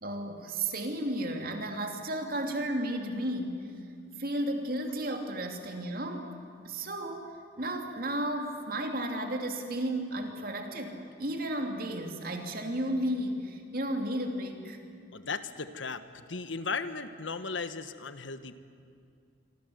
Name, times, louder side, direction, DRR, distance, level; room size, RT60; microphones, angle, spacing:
voice 1, 0.0-3.7 4.2-6.3 6.6-14.8, right 1 dB, 50° right, 4 dB, 2.9 m, -33 dB
voice 2, 15.1-18.6, left 4 dB, 85° left, 11 dB, 1.4 m, -36 dB
26.5 x 24.5 x 8.0 m, 2.3 s
head